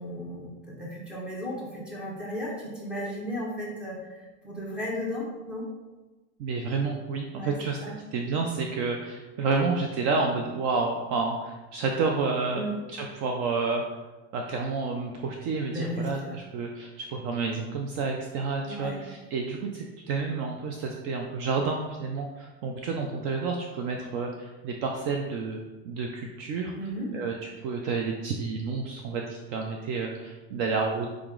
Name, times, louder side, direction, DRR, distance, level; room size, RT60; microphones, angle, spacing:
voice 1, 0.0-5.6 7.3-7.9 12.5-12.7 15.7-16.3 18.6-19.0 26.7-27.1, equal, 5° right, -5 dB, 0.9 m, -35 dB
voice 2, 6.4-7.8 8.1-12.6 12.9-13.8 14.3-26.7 27.1-27.3 27.6-31.1, right 4 dB, 45° right, 1 dB, 0.4 m, -30 dB
4.8 x 2.9 x 3.7 m, 1.2 s
supercardioid pair, 150°, 34 cm